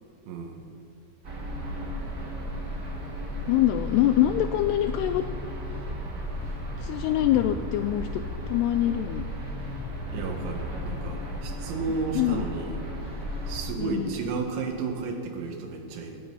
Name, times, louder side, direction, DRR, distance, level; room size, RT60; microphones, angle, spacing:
voice 1, 0.3-0.6 10.1-12.8 13.5-16.2, right 4 dB, 80° right, 3 dB, 4.1 m, -33 dB
sound 1, 1.2-13.7, equal, 40° right, 1.3 m, -35 dB
Musical instrument, 3.2-15.0, right 1 dB, 20° right, 3.4 m, -43 dB
voice 2, 3.5-5.2 6.8-8.2 8.5-9.2 11.9-12.4 13.8-14.2, left 13 dB, 85° left, 9 dB, 2.4 m, -24 dB
25.0 x 10.0 x 5.6 m, 2.5 s
omnidirectional pair, 5.3 m